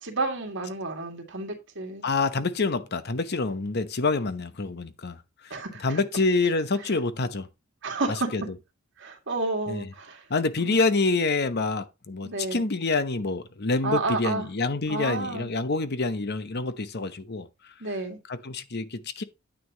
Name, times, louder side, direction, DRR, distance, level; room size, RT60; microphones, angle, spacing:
voice 1, 0.0-2.1 5.5-6.0 7.8-8.3 9.0-10.2 10.6-10.8 12.2-12.7 13.8-14.5 14.9-15.5 17.8-18.2, right 3 dB, 60° right, 2.3 m, -31 dB
voice 2, 2.0-5.2 5.4-5.6 5.8-7.5 8.3-8.4 9.7-9.9 10.3-17.5 18.3-19.2, left 3 dB, 50° left, 0.9 m, -27 dB
9.6 x 8.6 x 2.9 m
head